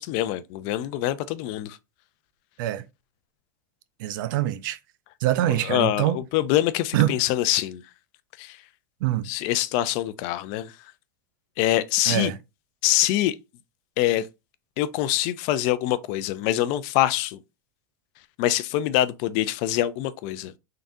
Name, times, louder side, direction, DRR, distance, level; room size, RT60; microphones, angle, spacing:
voice 1, 0.0-1.8 5.6-7.8 8.4-8.6 9.3-10.7 11.6-12.3 12.8-13.3 14.0-14.3 14.8-17.4 18.4-20.5, left 14 dB, 55° left, 0.5 m, -24 dB
voice 2, 4.0-4.8 5.2-6.2 6.9-7.1 9.0-9.3 12.1-12.4, right 13 dB, 70° right, 0.5 m, -24 dB
3.7 x 3.5 x 2.6 m
supercardioid pair, 135°, 11 cm